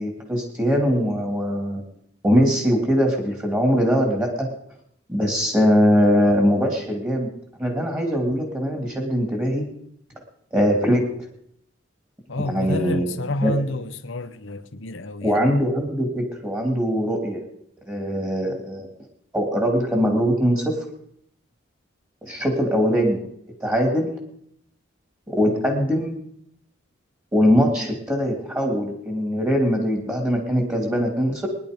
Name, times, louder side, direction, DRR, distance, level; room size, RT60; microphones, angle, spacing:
voice 1, 0.0-1.8 2.2-4.5 5.1-7.3 7.6-9.7 10.5-11.1 12.4-13.5 15.2-17.4 17.8-18.9 19.3-20.8 22.2-23.2 23.6-24.1 25.3-26.1 27.3-31.5, equal, 15° right, 2.5 m, -21 dB
voice 2, 12.3-15.4 25.5-25.7, left 2 dB, 85° left, 1.0 m, -29 dB
20.5 x 11.0 x 5.2 m
head